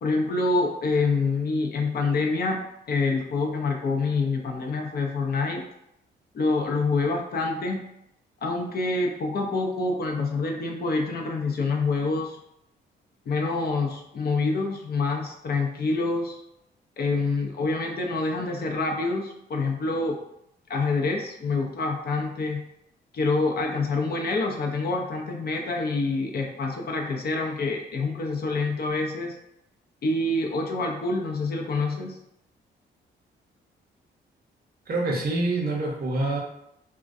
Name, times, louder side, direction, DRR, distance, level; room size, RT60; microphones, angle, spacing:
voice 1, 0.0-2.6 2.9-5.6 6.3-7.8 8.4-12.4 13.3-16.4 17.0-20.2 20.7-22.6 23.1-29.4 30.0-32.2, left 3 dB, 50° left, 1 dB, 0.5 m, -26 dB
voice 2, 34.9-36.4, right 2 dB, 50° right, 0 dB, 0.7 m, -26 dB
2.3 x 2.2 x 2.5 m, 0.78 s
cardioid pair, 70°, 20 cm